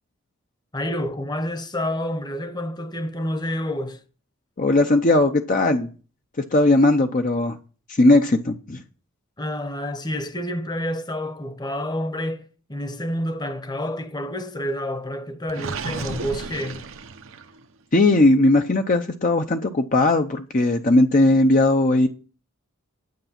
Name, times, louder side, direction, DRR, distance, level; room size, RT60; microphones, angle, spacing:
voice 1, 0.7-4.0 9.4-16.9, left 1 dB, 20° left, 1.0 m, -29 dB
voice 2, 4.6-5.9 6.5-7.6 8.0-8.8 17.9-22.1, left 2 dB, 40° left, 0.7 m, -18 dB
Gurgling, 15.5-17.6, right 4 dB, 75° right, 0.9 m, -33 dB
9.5 x 9.0 x 5.8 m
head